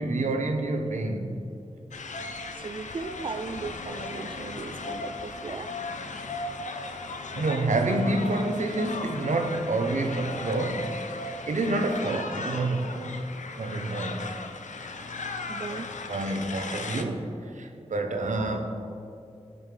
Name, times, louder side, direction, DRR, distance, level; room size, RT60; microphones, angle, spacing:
voice 1, 0.0-1.4 7.3-11.0 11.5-13.3 13.6-14.3 15.8-15.9 16.1-18.8, right 2 dB, 90° right, 5 dB, 0.8 m, -28 dB
sound 1, 1.9-17.0, left 3 dB, 85° left, 0.6 m, -37 dB
voice 2, 2.5-5.7 15.5-15.9, right 4 dB, 45° right, 12 dB, 0.4 m, -37 dB
15.5 x 5.4 x 3.4 m, 2.6 s
wide cardioid pair, 80°, 12 cm